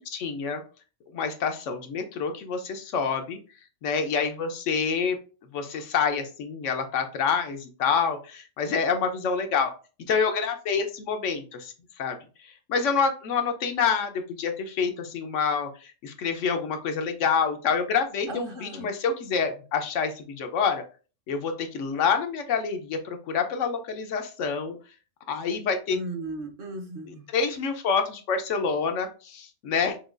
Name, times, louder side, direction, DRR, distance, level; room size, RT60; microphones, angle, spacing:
voice 1, 0.1-0.6 1.1-3.4 3.8-5.2 5.5-9.7 10.1-20.8 21.3-24.8 25.3-26.0 27.3-30.0, left 6 dB, 85° left, 6 dB, 1.0 m, -27 dB
voice 2, 18.3-18.9 25.9-27.3, right 2 dB, 50° right, 3 dB, 0.9 m, -36 dB
6.0 x 2.3 x 2.4 m, 0.35 s
omnidirectional pair, 1.3 m